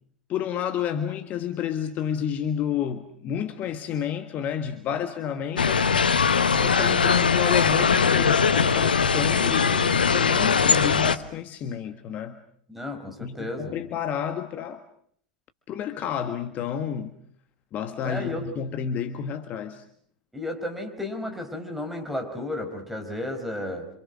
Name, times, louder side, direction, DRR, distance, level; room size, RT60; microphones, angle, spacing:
voice 1, 0.3-5.9 6.6-12.4 13.2-14.8 15.7-17.1 17.7-19.8, left 9 dB, 35° left, 1.6 m, -30 dB
sound 1, 5.6-11.2, left 6 dB, 75° left, 1.1 m, -21 dB
voice 2, 12.7-13.8 18.0-18.5 20.3-23.9, left 1 dB, 5° right, 4.9 m, -33 dB
27.5 x 27.0 x 6.3 m
figure-of-eight pair, 90°, 5 cm